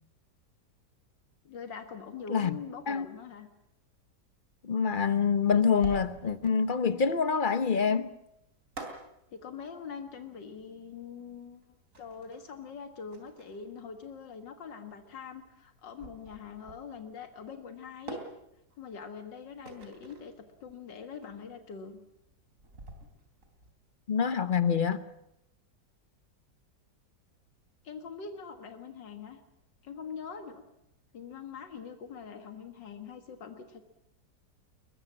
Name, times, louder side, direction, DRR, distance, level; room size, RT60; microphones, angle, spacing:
voice 1, 1.4-3.5 9.3-11.6 12.0-18.2 18.8-22.0 27.8-29.4 29.8-30.6 31.1-33.9, left 6 dB, 85° left, 2.3 m, -43 dB
voice 2, 4.6-8.1 24.1-25.0, left 6 dB, 35° left, 0.9 m, -26 dB
sound 1, 5.4-23.7, right 2 dB, 45° right, 3.7 m, -48 dB
22.5 x 20.5 x 7.4 m
omnidirectional pair, 1.9 m